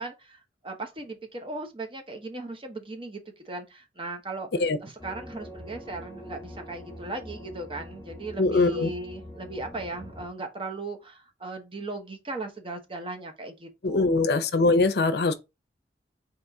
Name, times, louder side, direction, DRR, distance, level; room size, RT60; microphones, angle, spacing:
voice 1, 0.0-4.5 4.8-14.2, right 2 dB, 30° right, 0.9 m, -37 dB
sound 1, 5.0-10.3, equal, 10° left, 1.4 m, -43 dB
voice 2, 8.4-8.9 13.8-15.3, left 3 dB, 60° left, 0.6 m, -22 dB
4.2 x 3.1 x 3.5 m
head